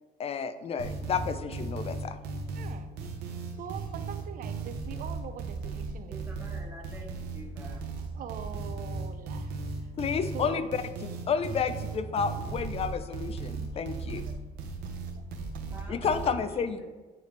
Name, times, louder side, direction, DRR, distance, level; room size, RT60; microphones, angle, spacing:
voice 1, 0.2-2.2 10.0-10.6 11.3-14.2 15.9-16.9, left 6 dB, 35° left, 12 dB, 0.4 m, -31 dB
sound 1, 0.8-16.3, right 4 dB, 85° right, 0.9 m, -36 dB
voice 2, 2.5-2.9 3.4-6.2 8.1-9.6 10.3-10.7 14.2-14.4 14.8-15.2, right 8 dB, 55° right, 9 dB, 0.5 m, -43 dB
voice 3, 6.1-7.9 15.7-16.9, right 1 dB, 10° right, -2 dB, 1.4 m, -47 dB
9.0 x 3.3 x 3.2 m, 1.2 s
cardioid pair, 110°, 17 cm